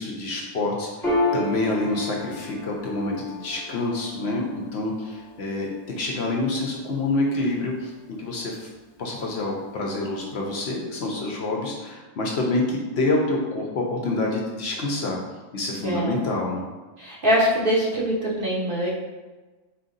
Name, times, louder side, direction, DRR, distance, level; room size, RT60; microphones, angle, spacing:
voice 1, 0.0-7.9 8.2-8.7 9.0-15.2 15.5-16.6, left 2 dB, 60° left, -1 dB, 0.8 m, -27 dB
Piano, 1.0-7.9, left 1 dB, ahead, 0.8 m, -32 dB
voice 2, 15.8-16.2 17.0-18.9, equal, 50° right, -4 dB, 0.9 m, -23 dB
4.2 x 2.6 x 3.8 m, 1.2 s
omnidirectional pair, 1.3 m